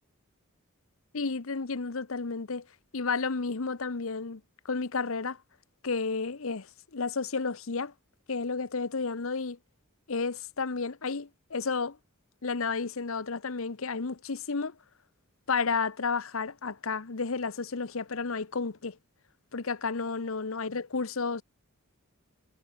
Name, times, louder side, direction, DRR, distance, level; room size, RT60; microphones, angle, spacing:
voice 1, 1.1-2.7 2.9-5.4 5.8-7.9 8.3-9.6 10.1-12.0 12.4-14.7 15.5-19.0 19.5-21.4, left 4 dB, 70° left, 0.9 m, -32 dB
head